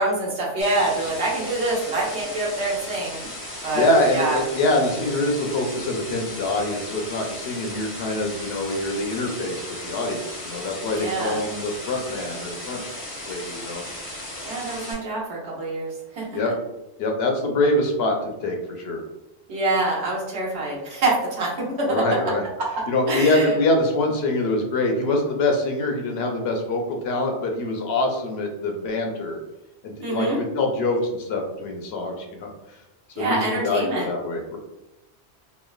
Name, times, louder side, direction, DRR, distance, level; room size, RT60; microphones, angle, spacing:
voice 1, 0.0-3.2 3.6-3.9 4.1-4.4 10.9-11.4 14.4-16.4 19.5-21.5 21.8-22.0 22.6-22.7 23.1-23.5 30.0-30.4 33.2-34.1, right 2 dB, 80° right, -3 dB, 1.1 m, -25 dB
sound 1, 0.6-14.9, left 1 dB, 20° left, 0.6 m, -36 dB
voice 2, 3.7-12.8 13.2-13.8 16.3-16.5 17.0-19.0 21.9-22.4 22.9-29.4 29.8-32.5 33.2-34.6, left 2 dB, 70° left, 2 dB, 0.8 m, -24 dB
3.0 x 2.1 x 2.3 m, 0.94 s
omnidirectional pair, 1.1 m